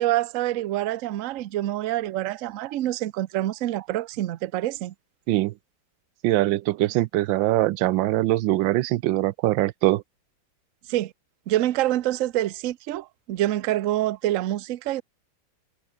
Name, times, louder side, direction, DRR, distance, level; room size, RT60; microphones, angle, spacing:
voice 1, 0.0-4.9 10.9-11.1 11.5-15.0, right 14 dB, 60° right, 0.8 m, -26 dB
voice 2, 6.2-10.0, right 16 dB, 85° right, 1.4 m, -22 dB
omnidirectional pair, 2.0 m